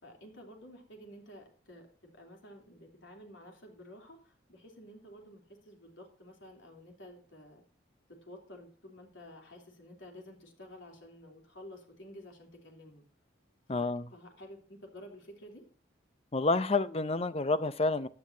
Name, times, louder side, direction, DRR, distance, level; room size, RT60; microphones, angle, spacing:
voice 1, 0.0-7.6 8.2-13.1 13.7-15.7, left 1 dB, 70° left, 2 dB, 3.4 m, -51 dB
voice 2, 13.7-14.1 16.3-18.1, left 3 dB, 30° left, 13 dB, 0.6 m, -29 dB
15.5 x 9.7 x 2.8 m, 0.40 s
head